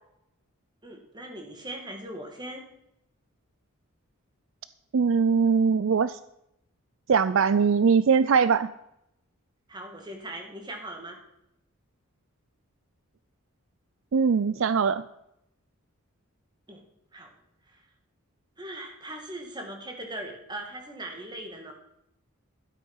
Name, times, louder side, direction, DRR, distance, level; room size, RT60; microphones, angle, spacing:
voice 1, 0.8-2.6 9.7-11.2 16.7-16.8 17.1-17.3 17.7-17.8 18.6-21.7, right 1 dB, 20° right, 2 dB, 2.2 m, -39 dB
voice 2, 4.9-6.2 7.1-8.7 14.1-15.0, right 6 dB, 60° right, 15 dB, 0.4 m, -21 dB
12.5 x 8.4 x 5.6 m, 0.81 s
head